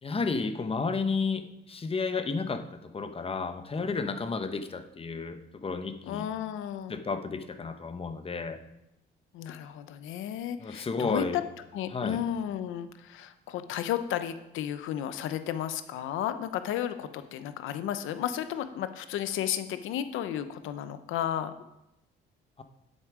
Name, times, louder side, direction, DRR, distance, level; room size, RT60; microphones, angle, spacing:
voice 1, 0.0-6.2 6.9-8.6 10.6-11.4 11.9-12.2 22.6-22.7, left 4 dB, 30° left, 8 dB, 1.0 m, -32 dB
voice 2, 6.0-7.0 9.3-11.4 11.7-21.5, left 10 dB, 90° left, 10 dB, 0.8 m, -33 dB
10.0 x 8.4 x 5.0 m, 0.89 s
cardioid pair, 90°, 20 cm